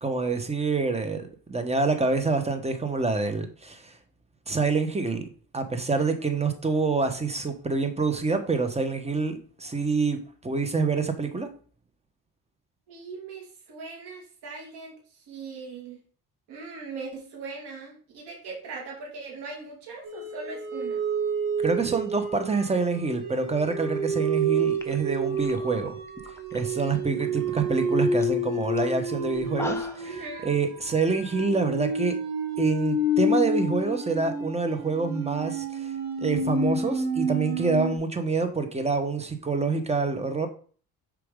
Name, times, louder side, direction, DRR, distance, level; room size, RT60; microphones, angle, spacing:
voice 1, 0.0-4.0 4.5-5.2 5.5-11.5 21.6-26.0 26.5-32.1 32.6-35.9 36.2-40.5, right 4 dB, 15° right, 1.1 m, -27 dB
voice 2, 12.9-16.0 16.5-21.0 26.8-27.2 30.0-30.5, right 4 dB, 90° right, 2.5 m, -40 dB
sound 1, 20.0-38.0, right 1 dB, 60° right, 2.4 m, -29 dB
sound 2, 24.4-24.5 24.7-26.7 27.0-27.5 27.8-27.9 28.2-28.4 28.8-28.9 29.3-30.1, left 2 dB, 5° left, 0.9 m, -40 dB
6.7 x 5.0 x 3.7 m
cardioid pair, 110°, 38 cm